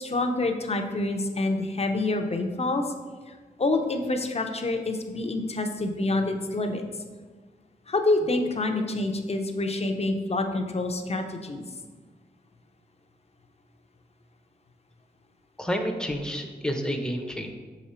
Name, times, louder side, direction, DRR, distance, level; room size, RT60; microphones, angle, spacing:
voice 1, 0.0-2.8 3.3-6.8 7.9-11.6, left 2 dB, 40° left, 5 dB, 0.7 m, -27 dB
voice 2, 15.6-17.5, equal, 5° left, 4 dB, 0.7 m, -29 dB
6.3 x 5.0 x 4.3 m, 1.4 s
wide cardioid pair, 105°, 16 cm